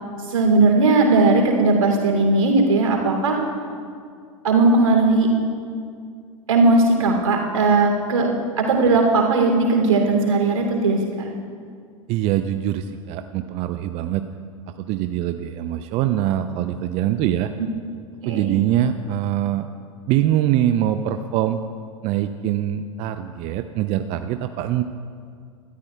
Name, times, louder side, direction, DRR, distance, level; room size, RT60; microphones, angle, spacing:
voice 1, 0.3-3.4 4.4-5.3 6.5-8.3 8.6-11.3 18.2-18.5, right 3 dB, 70° right, 1 dB, 2.8 m, -18 dB
voice 2, 12.1-14.3 14.8-17.5 18.3-19.7 20.1-21.6 22.0-24.8, right 12 dB, 35° right, 9 dB, 0.5 m, -23 dB
25.5 x 13.0 x 2.3 m, 2.2 s
figure-of-eight pair, 90°, 18 cm